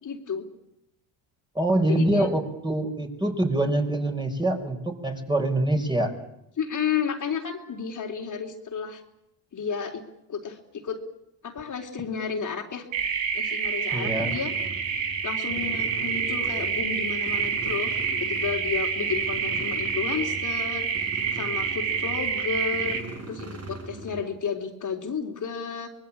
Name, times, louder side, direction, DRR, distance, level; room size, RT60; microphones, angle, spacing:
voice 1, 0.0-0.5 1.9-2.3 6.6-9.0 9.5-10.0 10.3-11.0 11.4-12.9 13.3-14.5 15.2-20.9 21.3-23.0 23.3-25.9, left 6 dB, 40° left, 2 dB, 3.7 m, -32 dB
voice 2, 1.6-6.1 13.9-14.3, right 1 dB, 10° right, 3 dB, 5.3 m, -25 dB
sound 1, 12.9-23.0, right 6 dB, 75° right, 4.2 m, -28 dB
sound 2, 14.3-24.2, right 2 dB, 30° right, 5.2 m, -41 dB
25.0 x 20.5 x 8.7 m, 0.83 s
supercardioid pair, 70°, 46 cm